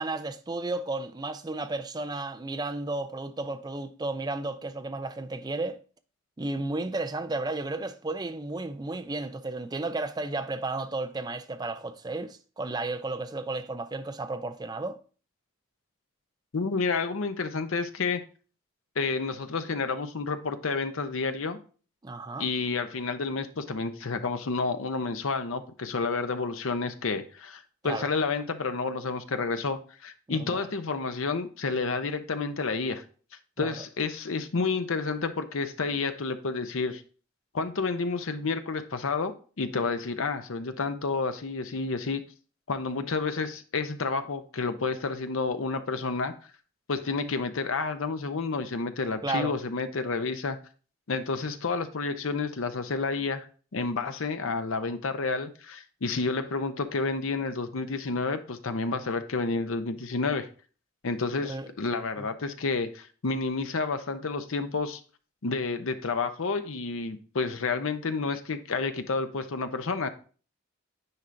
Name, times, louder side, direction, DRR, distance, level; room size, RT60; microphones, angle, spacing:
voice 1, 0.0-5.8 6.4-15.0 22.0-22.5 27.8-28.1 30.3-30.7 33.6-33.8 49.2-49.5 61.4-61.7 62.2-62.3, right 2 dB, 20° right, 0.4 m, -33 dB
voice 2, 16.5-18.2 19.0-21.6 22.4-33.0 33.6-37.0 37.5-42.2 42.7-46.3 46.9-50.6 51.1-53.5 53.7-60.5 61.0-65.0 65.4-70.1, left 4 dB, 75° left, 0.7 m, -30 dB
9.7 x 4.3 x 2.6 m
head